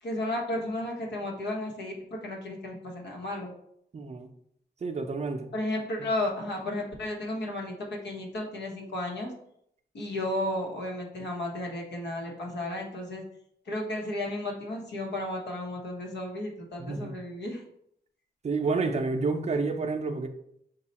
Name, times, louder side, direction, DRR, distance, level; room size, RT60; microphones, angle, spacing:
voice 1, 0.0-3.5 5.5-9.3 9.9-13.2 13.7-17.6, left 1 dB, 90° left, 1.0 m, -33 dB
voice 2, 3.9-4.3 4.8-5.5 6.0-6.1 16.8-17.2 18.4-20.3, right 4 dB, 40° right, 0.5 m, -29 dB
5.3 x 2.3 x 4.1 m
wide cardioid pair, 120°, 17 cm